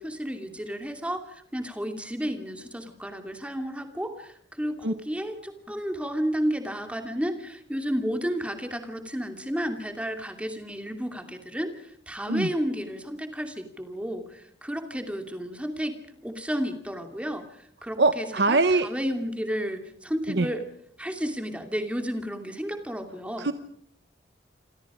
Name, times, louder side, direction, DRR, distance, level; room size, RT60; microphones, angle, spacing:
voice 1, 0.0-20.6 21.0-23.5, equal, 5° right, 6 dB, 2.7 m, -32 dB
voice 2, 18.0-18.9 20.3-20.5 23.4-23.5, right 3 dB, 65° right, 11 dB, 1.0 m, -23 dB
27.0 x 27.0 x 5.0 m, 0.66 s
head